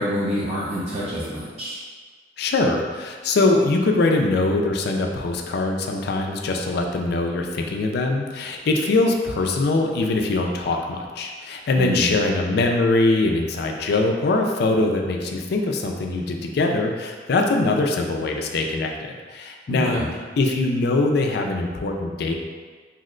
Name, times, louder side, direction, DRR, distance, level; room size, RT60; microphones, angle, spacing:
voice 1, 0.0-1.8 11.8-12.1 19.7-20.1, equal, 35° right, -10 dB, 0.6 m, -27 dB
voice 2, 2.4-20.0 20.4-22.3, left 2 dB, 60° left, 2 dB, 0.4 m, -22 dB
2.8 x 2.1 x 3.7 m, 1.5 s
head